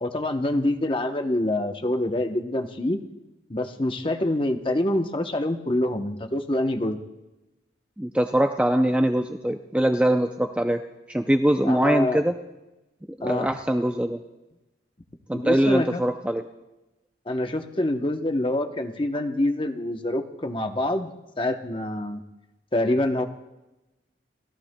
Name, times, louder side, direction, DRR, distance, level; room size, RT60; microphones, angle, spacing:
voice 1, 0.0-3.0 3.5-7.0 11.6-12.2 13.2-13.5 15.3-16.0 17.3-22.2 22.7-23.2, left 1 dB, 25° left, 5 dB, 0.8 m, -26 dB
voice 2, 8.0-10.8 11.1-12.3 13.2-14.2 15.3-16.4, right 1 dB, 5° right, 5 dB, 0.4 m, -22 dB
29.5 x 14.5 x 2.2 m, 1.0 s
head